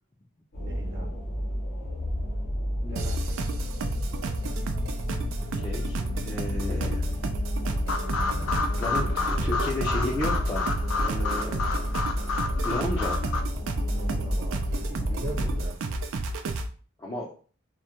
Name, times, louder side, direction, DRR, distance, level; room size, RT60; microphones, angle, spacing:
sound 1, 0.5-15.7, left 1 dB, 55° left, 0.7 m, -31 dB
voice 1, 0.6-1.1 2.8-3.4 13.9-16.0, right 1 dB, 60° right, -3 dB, 0.9 m, -40 dB
sound 2, 3.0-16.7, right 2 dB, 75° right, 0.3 m, -33 dB
voice 2, 5.5-7.0 7.9-8.0 8.8-11.9 12.6-13.2 17.0-17.3, left 1 dB, 20° left, -5 dB, 0.3 m, -33 dB
sound 3, 7.9-13.4, left 4 dB, 90° left, 0.4 m, -30 dB
2.2 x 2.1 x 2.7 m, 0.39 s
head